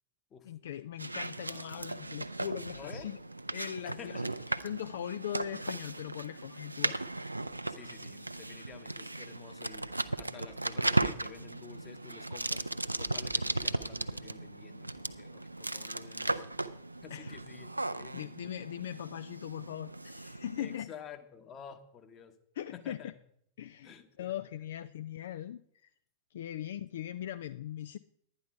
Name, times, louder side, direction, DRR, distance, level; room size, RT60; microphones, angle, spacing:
voice 1, 0.4-3.2 3.5-4.2 4.5-7.0 17.1-17.3 18.1-20.9 22.6-23.0 23.6-25.9 26.3-28.0, left 11 dB, 60° left, 14 dB, 0.3 m, -40 dB
sound 1, 1.0-20.8, right 2 dB, 85° right, 0.4 m, -36 dB
voice 2, 2.7-3.1 3.8-4.4 7.7-12.6 13.0-16.4 17.0-17.7 18.0-18.5 20.6-22.4 22.7-23.2 23.8-24.3, left 7 dB, 25° left, 7 dB, 1.3 m, -51 dB
11.5 x 9.5 x 5.0 m, 0.70 s
figure-of-eight pair, 90°, 0 cm